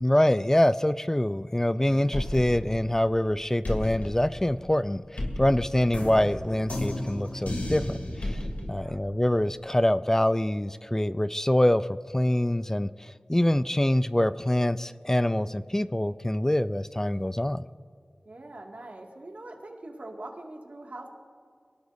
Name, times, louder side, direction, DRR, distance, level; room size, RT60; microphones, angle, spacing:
voice 1, 0.0-8.4 8.7-11.9 12.1-17.6, left 1 dB, 20° left, 13 dB, 0.4 m, -25 dB
sound 1, 1.9-3.3 3.6-8.7, left 1 dB, 85° left, 2.9 m, -33 dB
voice 2, 8.7-9.0 18.2-21.1, right 2 dB, 75° right, 0 dB, 2.1 m, -43 dB
24.0 x 18.0 x 2.7 m, 2.2 s
wide cardioid pair, 45°, 3 cm